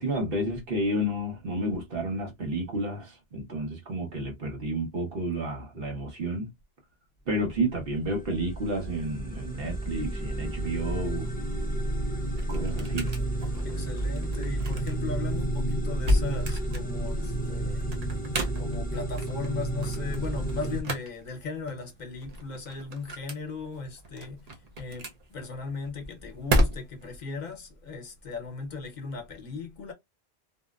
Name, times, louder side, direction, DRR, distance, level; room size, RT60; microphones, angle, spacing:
voice 1, 0.0-6.5 7.3-11.3 12.5-13.1, right 1 dB, 65° right, 1.2 m, -31 dB
sound 1, 7.5-20.8, right 1 dB, 10° left, 0.4 m, -31 dB
sound 2, 11.7-27.2, equal, 45° right, 0.7 m, -33 dB
voice 2, 13.6-17.9 18.6-29.9, left 4 dB, 50° left, 0.9 m, -37 dB
2.7 x 2.0 x 2.3 m
omnidirectional pair, 1.0 m